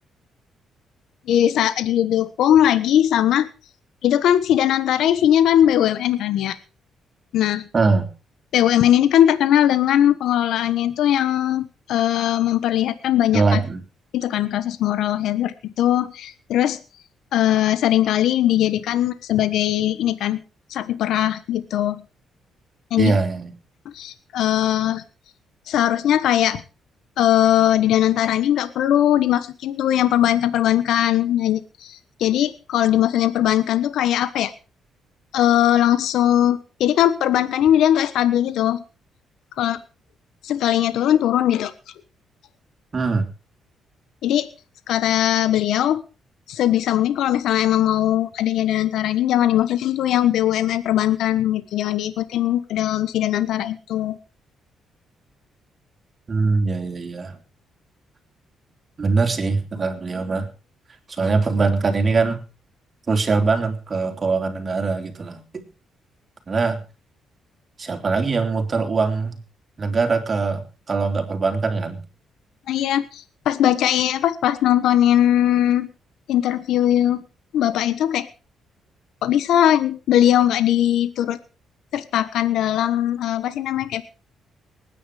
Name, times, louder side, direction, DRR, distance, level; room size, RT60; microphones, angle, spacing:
voice 1, 1.3-3.5 4.0-6.6 7.3-7.7 8.5-13.6 14.1-16.8 17.3-20.4 20.7-22.0 22.9-23.2 23.8-25.0 25.7-26.6 27.2-34.5 35.3-38.8 39.6-39.8 40.4-41.7 44.2-44.5 44.9-46.0 46.5-54.2 72.7-75.9 76.3-77.2 77.5-78.3 79.2-81.4 81.9-84.1, left 11 dB, 80° left, 13 dB, 1.2 m, -20 dB
voice 2, 7.7-8.1 13.3-13.8 23.0-23.5 42.9-43.3 56.3-57.4 59.0-60.5 61.1-62.4 63.1-65.6 66.5-66.8 67.8-69.4 69.8-72.0, right 4 dB, 35° right, 4 dB, 3.6 m, -22 dB
19.5 x 10.0 x 4.9 m, 0.34 s
cardioid pair, 90°, 0 cm